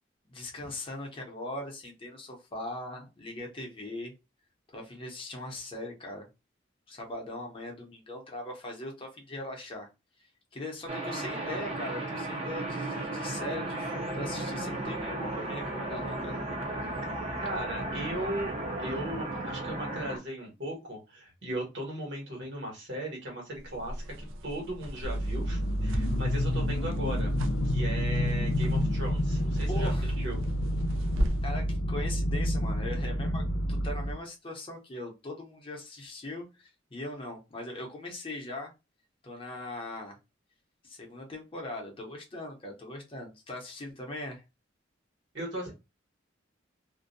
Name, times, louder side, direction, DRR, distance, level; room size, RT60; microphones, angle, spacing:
voice 1, 0.3-4.1 4.7-6.3 6.9-9.9 10.5-16.4 29.7-30.2 31.4-38.7 39.2-40.2 40.8-44.4, left 1 dB, 30° left, 0.7 m, -40 dB
sound 1, 10.9-20.2, right 2 dB, 30° right, 0.6 m, -35 dB
voice 2, 17.4-18.5 18.8-24.1 24.4-27.3 27.6-30.4 45.3-45.7, right 1 dB, 65° right, 1.3 m, -37 dB
sound 2, 23.5-31.6, equal, 85° right, 0.4 m, -39 dB
sound 3, 25.0-34.1, equal, 65° left, 0.5 m, -29 dB
2.5 x 2.1 x 2.5 m
head